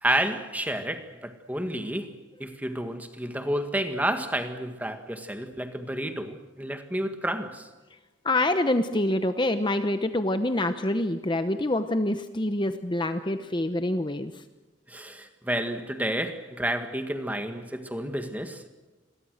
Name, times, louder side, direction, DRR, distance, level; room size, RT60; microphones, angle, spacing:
voice 1, 0.0-7.7 14.9-18.7, right 1 dB, 10° right, 1.8 m, -30 dB
voice 2, 8.2-14.4, left 1 dB, 25° left, 0.9 m, -26 dB
28.5 x 22.5 x 6.5 m
head